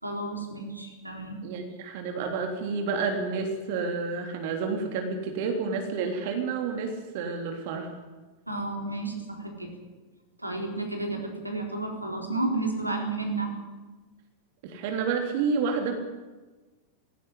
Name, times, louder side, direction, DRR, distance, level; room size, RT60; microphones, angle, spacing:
voice 1, 0.0-1.4 8.5-9.7 10.4-13.5, right 2 dB, 85° right, 2 dB, 4.0 m, -32 dB
voice 2, 1.4-7.9 14.6-16.0, right 5 dB, 50° right, 4 dB, 3.4 m, -30 dB
18.0 x 17.5 x 10.0 m, 1.2 s
figure-of-eight pair, 90°, 0 cm